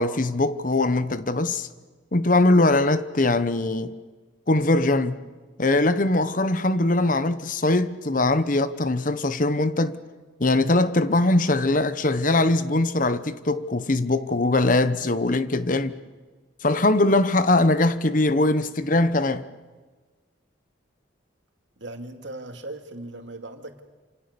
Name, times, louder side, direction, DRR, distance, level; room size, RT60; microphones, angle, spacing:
voice 1, 0.0-1.7 2.1-4.0 4.5-5.2 5.6-10.0 10.4-16.0 16.6-19.4, left 2 dB, 45° left, 1.0 m, -21 dB
voice 2, 21.8-23.8, right 2 dB, 75° right, 2.5 m, -38 dB
28.0 x 26.5 x 6.9 m
head